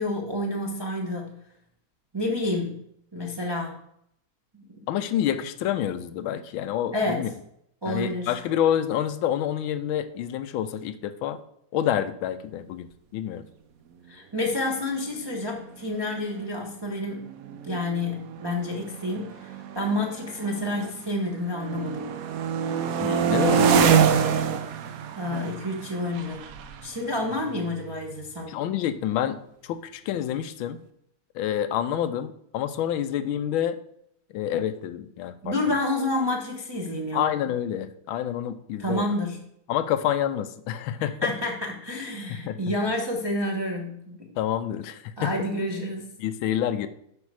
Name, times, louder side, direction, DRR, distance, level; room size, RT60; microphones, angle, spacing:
voice 1, 0.0-1.4 2.1-2.8 3.1-3.8 4.5-4.6 6.9-7.2 7.8-8.3 14.1-22.1 25.2-26.4 26.8-28.5 35.4-37.3 38.8-39.4 41.2-44.3 45.2-46.1, left 1 dB, 25° right, -1 dB, 0.5 m, -29 dB
voice 2, 4.9-7.3 7.9-11.4 11.7-13.4 23.0-24.0 28.5-30.8 31.3-33.8 34.3-35.8 37.1-39.1 39.7-41.3 42.5-42.6 44.4-45.5 46.2-46.9, left 10 dB, 85° left, 11 dB, 1.4 m, -28 dB
sound 1, 15.7-15.8 16.1-16.4 17.2-21.1 21.4-28.1, right 7 dB, 70° right, 0.8 m, -26 dB
8.3 x 5.3 x 4.8 m, 0.73 s
omnidirectional pair, 2.2 m